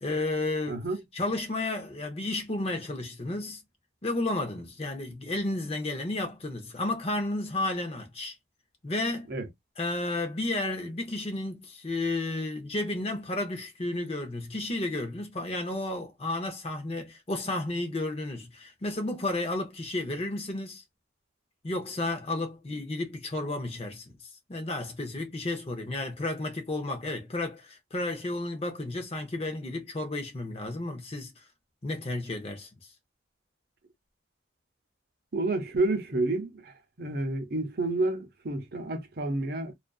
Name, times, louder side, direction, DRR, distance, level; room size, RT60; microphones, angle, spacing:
voice 1, 0.0-0.8 1.1-3.6 4.0-8.3 8.8-9.3 9.8-20.8 21.6-31.4 31.8-32.7, left 2 dB, 30° left, 0.6 m, -32 dB
voice 2, 0.7-1.0 9.3-9.5 35.3-36.7 37.0-39.7, right 2 dB, 50° right, 0.7 m, -29 dB
2.5 x 2.3 x 2.3 m
head